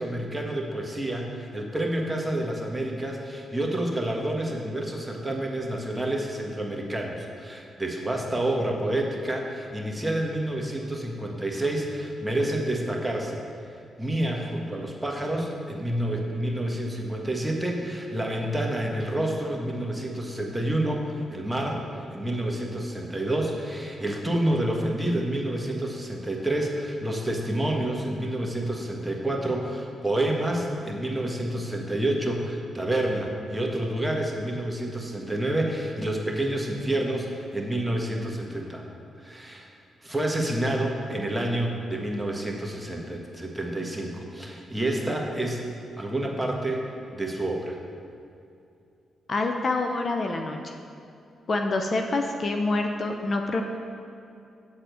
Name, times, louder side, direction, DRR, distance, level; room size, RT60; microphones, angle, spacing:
voice 1, 0.0-13.4 14.0-38.8 39.2-45.6 46.0-46.8 47.1-47.8, right 1 dB, 10° right, 0 dB, 1.4 m, -28 dB
voice 2, 49.3-50.7 51.5-53.6, left 2 dB, 50° left, 4 dB, 0.6 m, -26 dB
7.8 x 4.3 x 6.8 m, 2.6 s
supercardioid pair, 55°, 0 cm